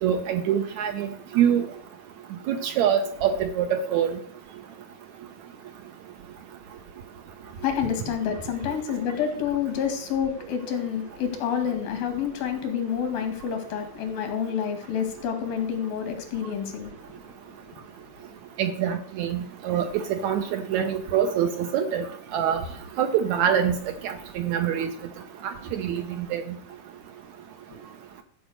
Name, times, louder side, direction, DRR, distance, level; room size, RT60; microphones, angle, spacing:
voice 1, 0.0-1.1 1.3-1.7 2.5-4.2 18.6-22.1 22.3-22.6 23.0-23.8 24.0-24.9 25.4-26.4, right 8 dB, 75° right, 7 dB, 1.8 m, -25 dB
voice 2, 7.6-17.4 17.7-17.8, left 8 dB, 85° left, 6 dB, 3.7 m, -28 dB
13.5 x 5.0 x 7.8 m, 0.66 s
omnidirectional pair, 4.0 m